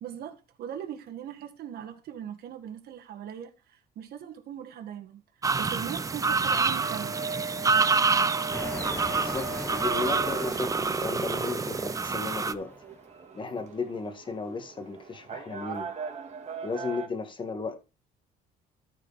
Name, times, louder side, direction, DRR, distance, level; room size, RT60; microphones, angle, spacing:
voice 1, 0.0-5.2 5.6-7.1, right 9 dB, 65° right, 1.8 m, -40 dB
sound 1, 5.4-12.5, right 4 dB, 20° right, 0.6 m, -27 dB
sound 2, 6.8-17.1, right 5 dB, 40° right, 2.0 m, -40 dB
sound 3, 8.5-13.0, left 2 dB, 10° left, 0.8 m, -40 dB
voice 2, 9.1-12.7 13.3-15.9 16.6-17.8, left 4 dB, 30° left, 1.7 m, -35 dB
13.5 x 5.0 x 4.1 m
cardioid pair, 110°, 17 cm